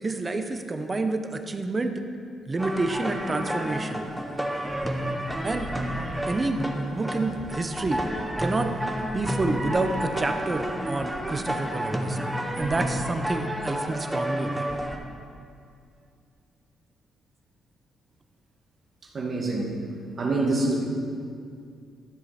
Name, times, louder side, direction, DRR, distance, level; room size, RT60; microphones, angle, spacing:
voice 1, 0.0-1.9 2.5-4.1 5.4-5.7 6.3-6.6 6.9-8.0 8.4-8.7 9.1-12.2 12.6-14.7, right 2 dB, 25° right, 7 dB, 0.8 m, -28 dB
sound 1, 2.6-15.0, equal, 5° right, 1.0 m, -30 dB
voice 2, 19.1-19.7 20.2-20.8, right 2 dB, 45° right, -2 dB, 1.8 m, -25 dB
12.5 x 7.6 x 4.2 m, 2.3 s
cardioid pair, 90°, 0 cm